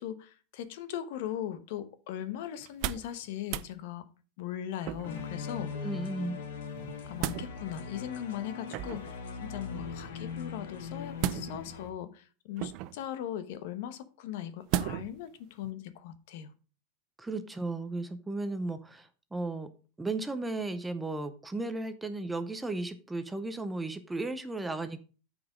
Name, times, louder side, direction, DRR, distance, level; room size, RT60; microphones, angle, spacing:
voice 1, 0.0-4.1 4.4-5.9 7.1-16.5, left 11 dB, 60° left, 12 dB, 1.0 m, -39 dB
sound 1, 2.6-3.2 3.4-3.7 4.8-5.3 6.8-7.5 8.7-9.2 11.2-11.8 12.6-13.1 14.7-15.2 15.6-15.7, right 13 dB, 45° right, 0.4 m, -34 dB
sound 2, 5.0-11.9, left 5 dB, 80° left, 1.8 m, -40 dB
voice 2, 5.7-6.4 17.2-19.7 20.0-25.0, right 2 dB, 5° right, 10 dB, 0.6 m, -35 dB
9.3 x 4.9 x 5.1 m, 0.37 s
supercardioid pair, 155°, 0 cm